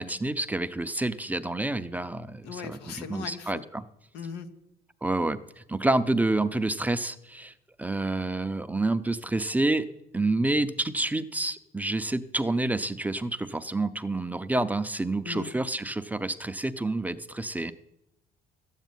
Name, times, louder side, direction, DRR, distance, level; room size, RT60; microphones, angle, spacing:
voice 1, 0.0-3.8 5.0-7.5 7.8-9.9 10.1-17.7, right 2 dB, 10° right, 10 dB, 0.6 m, -28 dB
voice 2, 2.4-3.6 4.1-4.5 15.2-15.5, left 6 dB, 90° left, 8 dB, 1.2 m, -38 dB
12.5 x 8.2 x 9.2 m, 0.86 s
cardioid pair, 110°, 17 cm